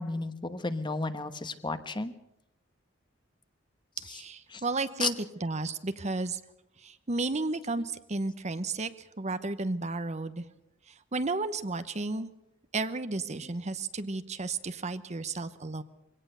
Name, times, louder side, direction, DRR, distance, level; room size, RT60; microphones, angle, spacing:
voice 1, 0.0-2.1 4.0-4.2 4.5-4.6 5.0-5.1, left 3 dB, 25° left, 10 dB, 1.1 m, -33 dB
voice 2, 4.0-5.1 5.4-6.4 6.8-10.4 10.9-12.3 12.7-15.8, right 3 dB, 35° right, 12 dB, 0.9 m, -33 dB
23.0 x 17.5 x 6.8 m, 0.82 s
head